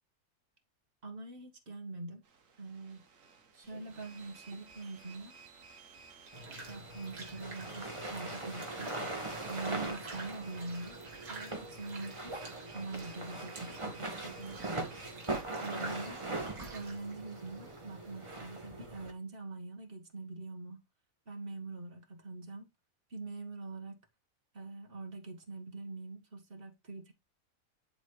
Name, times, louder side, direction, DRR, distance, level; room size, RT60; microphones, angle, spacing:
voice 1, 1.0-2.2 2.6-3.0 3.5-5.4 6.6-9.0 9.5-11.0 11.3-12.4 12.7-14.7 15.5-16.2 16.6-20.8 21.3-22.7 23.1-24.0 24.5-27.1, right 3 dB, 40° right, 1.8 m, -44 dB
sound 1, 2.2-15.4, right 4 dB, 60° right, 1.5 m, -56 dB
sound 2, 3.6-18.4, right 3 dB, 80° right, 2.4 m, -51 dB
sound 3, 6.3-19.1, right 2 dB, 20° right, 1.5 m, -41 dB
11.0 x 4.2 x 3.2 m
omnidirectional pair, 1.6 m